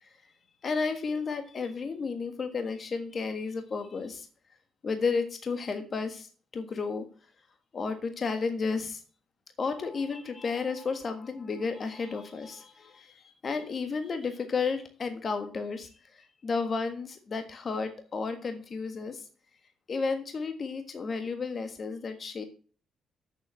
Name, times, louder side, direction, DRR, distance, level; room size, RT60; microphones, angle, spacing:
voice 1, 0.6-4.3 4.8-7.1 7.7-9.0 9.6-19.3 19.9-22.4, left 4 dB, 45° left, 7 dB, 1.5 m, -32 dB
8.5 x 7.3 x 7.6 m, 0.40 s
cardioid pair, 90°, 0 cm